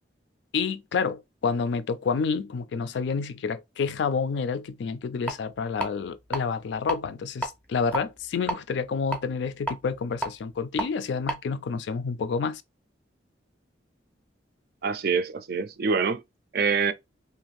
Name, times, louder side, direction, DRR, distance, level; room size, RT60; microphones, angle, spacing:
voice 1, 0.5-12.6, left 5 dB, 75° left, 0.3 m, -29 dB
sound 1, 5.3-5.4 5.8-6.4 6.7-7.0 7.4-8.6 9.1-10.9 11.2-11.4, right 1 dB, 10° left, 0.5 m, -30 dB
voice 2, 14.8-16.2 16.5-16.9, right 5 dB, 55° right, 0.4 m, -25 dB
2.6 x 2.4 x 3.0 m
head